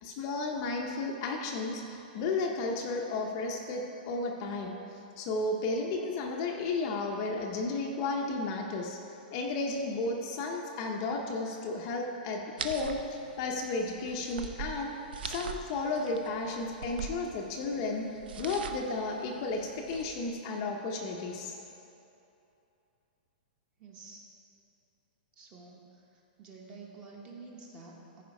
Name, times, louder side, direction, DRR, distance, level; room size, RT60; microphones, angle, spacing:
voice 1, 0.0-9.0 9.3-14.9 15.2-21.6, left 3 dB, 25° left, 1 dB, 0.6 m, -33 dB
sound 1, 12.6-20.3, right 6 dB, 80° right, 0.7 m, -43 dB
voice 2, 23.8-24.2 25.4-26.1 26.4-28.2, right 3 dB, 20° right, 0 dB, 0.9 m, -49 dB
14.5 x 4.9 x 5.2 m, 2.9 s
hypercardioid pair, 180°, 5 cm